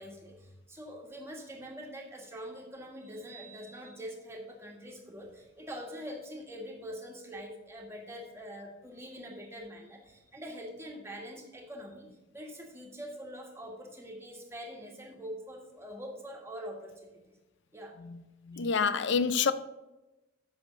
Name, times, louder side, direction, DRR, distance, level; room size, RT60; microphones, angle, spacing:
voice 1, 0.0-17.2 17.7-17.9 18.5-19.1, equal, 15° right, 1.6 m, -44 dB
voice 2, 18.5-19.5, left 5 dB, 60° left, 0.5 m, -26 dB
7.9 x 6.3 x 6.2 m
head